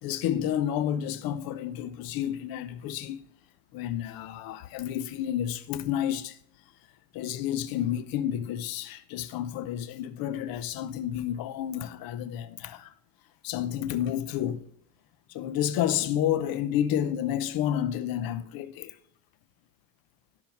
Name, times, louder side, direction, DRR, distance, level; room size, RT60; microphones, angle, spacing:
voice 1, 0.0-3.2 3.7-6.4 7.1-12.9 13.4-14.7 15.3-19.0, left 10 dB, 65° left, 0.8 m, -30 dB
10.5 x 6.3 x 5.9 m
supercardioid pair, 90°, 39 cm